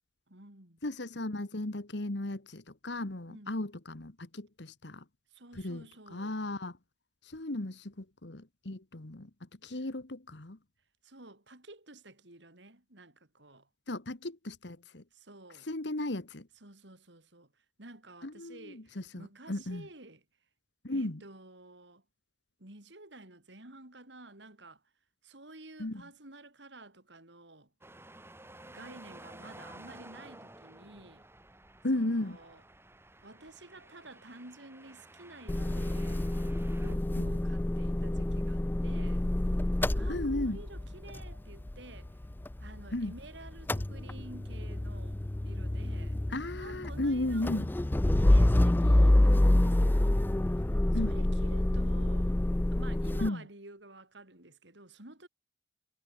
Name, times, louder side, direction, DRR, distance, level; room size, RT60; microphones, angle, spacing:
voice 1, 0.3-0.8 3.3-3.6 5.3-6.4 9.7-9.9 11.0-13.7 15.1-15.7 16.6-20.2 20.9-22.0 22.6-24.8 25.2-27.7 28.7-31.2 31.9-32.6 33.2-36.3 36.8-39.3 39.9-42.2 42.6-46.2 46.6-47.6 48.1-50.3 50.9-52.4 52.7-55.3, right 2 dB, 65° right, 4.6 m, -51 dB
voice 2, 0.8-5.1 5.5-5.8 6.1-6.8 7.2-10.6 13.9-15.0 15.6-16.5 18.2-19.9 20.8-21.2 25.8-26.0 31.8-32.4 37.2-37.3 40.1-40.6 42.9-43.1 46.3-47.7 50.9-51.1 53.2-53.5, left 1 dB, 65° left, 1.6 m, -35 dB
sound 1, 27.8-37.0, right 1 dB, 15° right, 6.7 m, -53 dB
Motor vehicle (road) / Engine starting / Idling, 35.5-43.2 43.5-53.3, left 1 dB, 10° left, 0.3 m, -27 dB
head